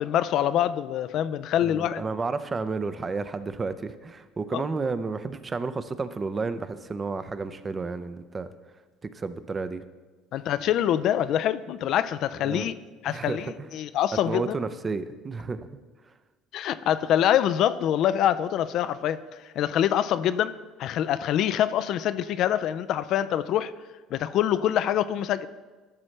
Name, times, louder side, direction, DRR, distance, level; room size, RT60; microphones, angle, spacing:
voice 1, 0.0-2.0 4.5-4.6 10.3-12.8 13.0-14.6 16.5-19.2 19.6-20.5 20.8-23.7 24.1-25.5, left 11 dB, 60° left, 14 dB, 0.3 m, -25 dB
voice 2, 1.6-8.5 9.0-9.8 12.4-12.7 13.1-13.7 14.1-15.7, right 4 dB, 25° right, 12 dB, 0.5 m, -31 dB
12.0 x 6.1 x 3.2 m, 1.3 s
supercardioid pair, 105°, 0 cm